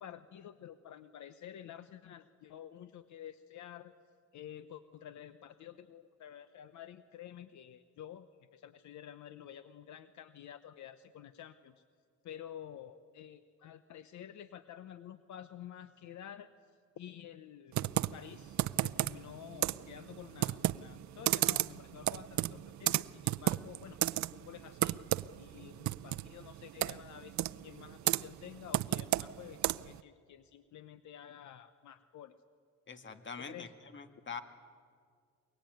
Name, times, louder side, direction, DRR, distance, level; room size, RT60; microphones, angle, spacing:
voice 1, 0.0-3.9 4.3-11.7 12.2-16.5 17.0-25.0 25.4-32.3 33.4-33.7, left 10 dB, 70° left, 13 dB, 0.9 m, -50 dB
Computer keyboard, 17.7-30.0, right 14 dB, 70° right, 0.6 m, -34 dB
voice 2, 32.9-34.4, left 5 dB, 40° left, 9 dB, 2.0 m, -44 dB
23.5 x 22.5 x 9.2 m, 2.1 s
cardioid pair, 90°, 30 cm